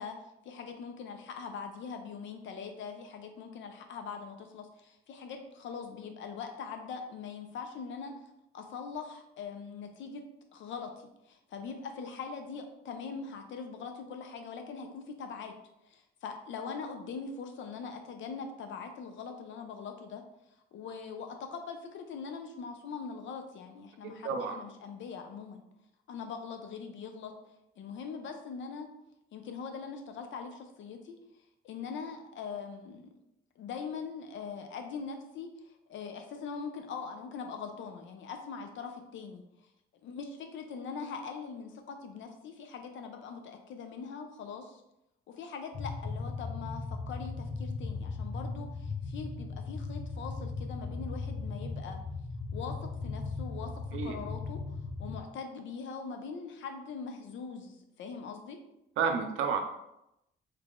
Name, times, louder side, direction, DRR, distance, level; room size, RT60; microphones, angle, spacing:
voice 1, 0.0-8.2 8.5-10.2 10.5-15.5 15.9-20.2 20.7-25.6 26.1-27.3 27.8-28.9 29.3-31.1 31.6-33.1 33.6-39.4 40.0-44.8 45.3-52.0 52.5-53.7 54.0-54.6 55.0-58.6, left 5 dB, 70° left, 5 dB, 0.6 m, -42 dB
voice 2, 24.0-24.6 53.9-54.2 59.0-59.6, right 6 dB, 85° right, 4 dB, 0.5 m, -30 dB
sound 1, 45.7-55.2, left 3 dB, 30° left, 0.6 m, -37 dB
3.2 x 2.4 x 3.6 m, 0.85 s
cardioid pair, 90°, 20 cm